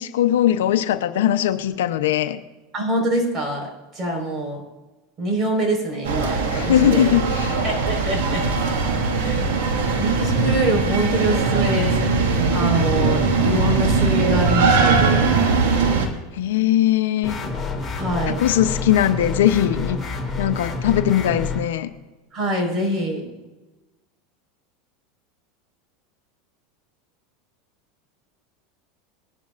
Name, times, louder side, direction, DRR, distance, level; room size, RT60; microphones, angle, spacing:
voice 1, 0.0-2.4 6.5-7.6 16.3-17.4 18.3-20.0 20.4-21.9, left 11 dB, 85° left, 9 dB, 0.8 m, -20 dB
voice 2, 2.7-4.6 5.2-7.0 7.6-8.5 9.1-9.7 10.0-15.3 18.0-18.4 22.3-23.3, right 1 dB, 35° right, 2 dB, 4.9 m, -25 dB
sound 1, 6.0-16.1, right 4 dB, 85° right, 2.0 m, -20 dB
sound 2, 17.2-21.6, left 3 dB, 10° left, 2.5 m, -28 dB
20.5 x 11.5 x 2.6 m, 1.1 s
supercardioid pair, 115°, 0 cm